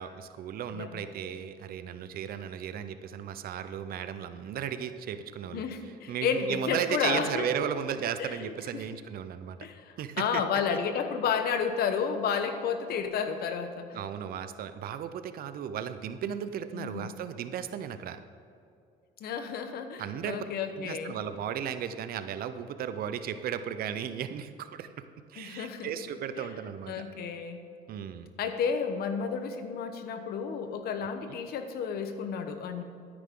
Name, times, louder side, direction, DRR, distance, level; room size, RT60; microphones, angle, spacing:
voice 1, 0.0-5.7 6.1-9.6 10.0-10.4 13.9-18.2 20.0-20.5 20.8-24.9 25.3-27.0 27.9-28.3 31.3-31.4, right 9 dB, 60° right, 11 dB, 0.7 m, -35 dB
voice 2, 0.7-1.1 5.5-7.5 8.2-8.9 9.6-13.9 16.7-17.1 19.2-21.2 25.4-25.9 26.4-26.5 26.9-27.6 28.4-32.8, left 6 dB, 70° left, 8 dB, 1.0 m, -31 dB
13.0 x 9.8 x 3.8 m, 2.5 s
cardioid pair, 110°, 17 cm